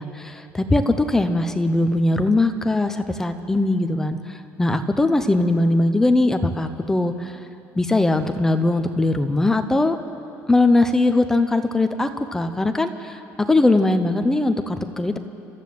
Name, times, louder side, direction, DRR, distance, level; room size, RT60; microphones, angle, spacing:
voice 1, 0.0-4.2 4.6-7.3 7.8-10.0 10.5-13.2 13.5-15.2, left 2 dB, 10° left, 8 dB, 0.7 m, -20 dB
29.5 x 14.0 x 7.7 m, 2.8 s
cardioid pair, 180°, 6 cm